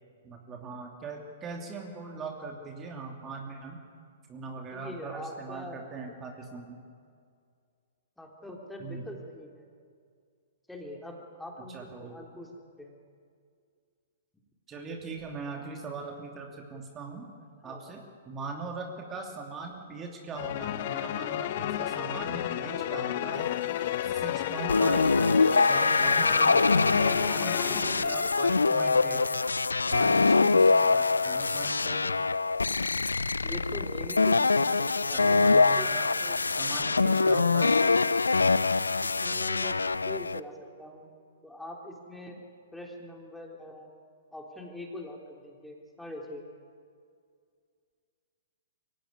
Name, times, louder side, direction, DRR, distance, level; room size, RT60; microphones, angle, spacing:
voice 1, 0.2-3.8 4.3-6.9 8.8-9.1 11.7-12.2 14.7-17.3 17.6-23.5 24.0-25.1 25.5-26.6 27.0-29.2 29.8-32.0 35.1-36.1 36.5-37.7, right 4 dB, 20° right, 2 dB, 2.8 m, -40 dB
voice 2, 4.7-5.8 8.2-9.7 10.7-12.5 12.8-13.0 17.6-17.8 22.6-22.9 33.4-35.9 36.2-36.4 39.2-39.8 40.1-41.1 41.4-42.4 42.7-43.9 44.3-46.5, left 1 dB, 5° left, 0 dB, 3.4 m, -43 dB
sound 1, 20.3-28.9, left 12 dB, 50° left, 1.1 m, -32 dB
sound 2, 24.7-40.4, left 3 dB, 85° left, 0.5 m, -24 dB
24.0 x 16.5 x 9.7 m, 2.2 s
figure-of-eight pair, 115°, 0 cm